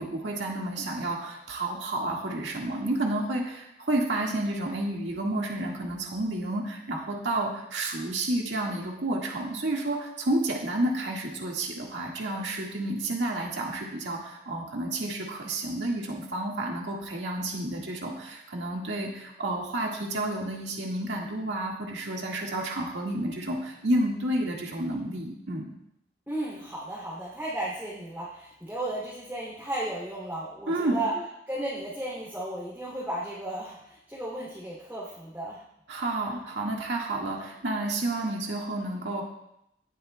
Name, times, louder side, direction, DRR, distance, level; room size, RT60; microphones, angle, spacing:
voice 1, 0.0-25.7 30.7-31.0 35.9-39.2, right 1 dB, 90° right, -1 dB, 1.8 m, -30 dB
voice 2, 26.3-31.1 31.5-35.6, right 1 dB, 10° right, -8 dB, 2.6 m, -34 dB
19.5 x 8.0 x 2.2 m, 0.81 s
head